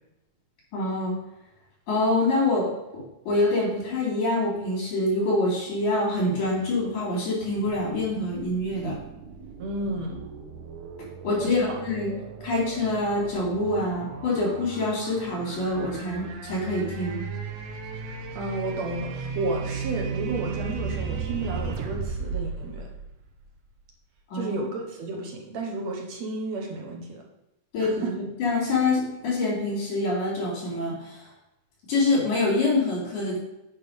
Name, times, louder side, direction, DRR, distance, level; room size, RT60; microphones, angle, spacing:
voice 1, 0.7-1.1 1.9-2.7 2.9-9.0 11.2-12.2 12.4-17.2 24.3-24.6 27.7-28.0 28.4-31.3 31.9-33.4, left 2 dB, 75° left, -4 dB, 4.9 m, -25 dB
sound 1, 7.4-23.7, right 5 dB, 80° right, 2.4 m, -36 dB
voice 2, 9.6-10.3 11.4-11.6 17.9-22.9 24.3-27.2 27.8-28.2, right 2 dB, 65° right, 1 dB, 2.4 m, -32 dB
9.1 x 5.1 x 5.2 m, 0.93 s
omnidirectional pair, 3.4 m